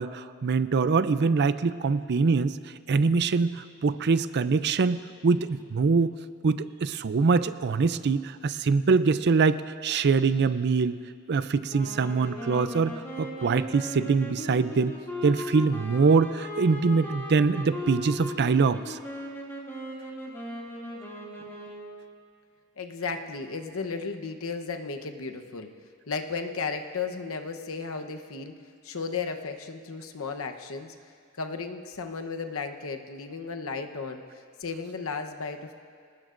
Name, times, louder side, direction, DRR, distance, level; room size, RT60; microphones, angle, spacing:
voice 1, 0.0-2.6 2.9-6.1 6.4-11.0 11.3-14.9 15.2-19.0, right 4 dB, 50° right, 13 dB, 0.5 m, -24 dB
sound 1, 11.7-22.0, left 1 dB, 10° left, 2.4 m, -38 dB
voice 2, 22.8-25.7 26.1-28.5 28.8-30.9 31.4-35.7, left 4 dB, 70° left, 5 dB, 1.0 m, -34 dB
26.0 x 19.0 x 2.6 m, 2.2 s
head